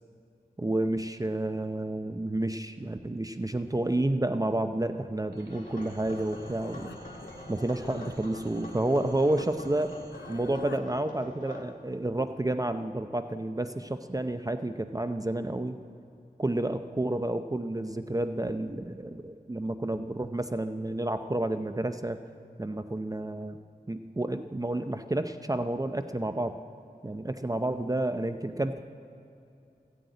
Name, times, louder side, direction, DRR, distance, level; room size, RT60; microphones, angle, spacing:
voice 1, 0.6-7.0 7.5-10.0 10.3-15.8 16.4-22.2 22.6-23.6 23.9-26.6 27.0-28.8, right 1 dB, 20° right, 9 dB, 0.6 m, -30 dB
sound 1, 5.3-10.6, right 2 dB, 85° right, 2.3 m, -53 dB
sound 2, 5.5-11.6, left 1 dB, 50° left, 1.9 m, -45 dB
Human voice, 6.1-9.5 9.8-10.8, left 5 dB, 85° left, 0.7 m, -48 dB
15.0 x 7.9 x 9.2 m, 2.7 s
wide cardioid pair, 60°, 17 cm